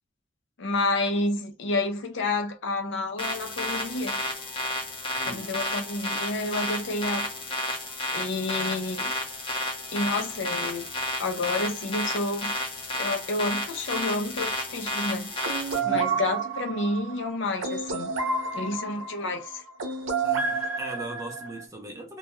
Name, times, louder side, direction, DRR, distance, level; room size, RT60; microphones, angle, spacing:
voice 1, 0.6-4.2 5.3-7.3 8.1-9.1 9.9-10.8 11.2-12.5 13.0-15.3 15.8-18.1 18.5-19.6, left 2 dB, 65° left, 0.6 m, -29 dB
sound 1, 3.2-15.8, left 1 dB, 25° left, 0.7 m, -32 dB
sound 2, 15.4-21.6, right 5 dB, 75° right, 0.7 m, -30 dB
voice 2, 15.7-16.1 20.2-22.2, right 1 dB, 15° right, 0.6 m, -39 dB
2.2 x 2.2 x 3.0 m
head